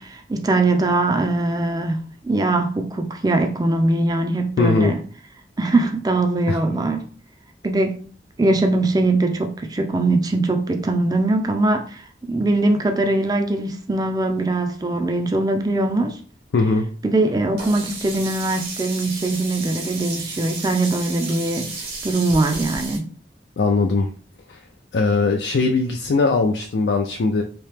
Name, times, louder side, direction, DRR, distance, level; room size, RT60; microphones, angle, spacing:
voice 1, 0.0-2.0 2.2-5.0 5.6-7.1 7.6-8.1 8.4-16.2 17.0-21.7 22.0-23.1, right 2 dB, 20° right, 0.4 m, -21 dB
voice 2, 4.6-4.9 6.5-6.6 16.5-16.9 23.6-24.1 24.5-24.6 24.9-27.4, left 3 dB, 80° left, 0.4 m, -20 dB
Sink (filling or washing), 17.6-23.0, right 3 dB, 65° right, 1.2 m, -33 dB
3.0 x 2.7 x 3.4 m
head